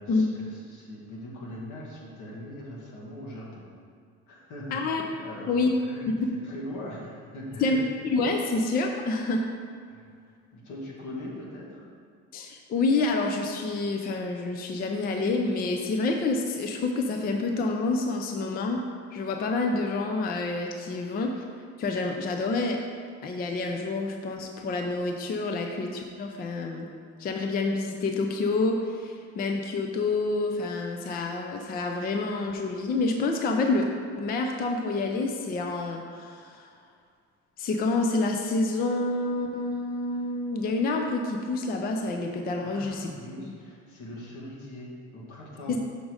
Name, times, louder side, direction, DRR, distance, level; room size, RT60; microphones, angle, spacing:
voice 1, 0.0-3.7 4.3-8.0 9.9-10.1 10.5-11.8 42.6-45.8, left 1 dB, 85° left, -4 dB, 1.9 m, -41 dB
voice 2, 4.7-5.0 5.5-5.7 6.2-6.3 7.6-9.5 12.3-18.8 19.1-21.4 21.8-22.8 23.2-26.9 27.2-33.9 34.2-36.7 37.6-43.1 43.4-43.5 45.7-45.8, left 3 dB, 30° left, 3 dB, 0.4 m, -28 dB
6.2 x 5.2 x 4.8 m, 2.1 s
cardioid pair, 170°, 30 cm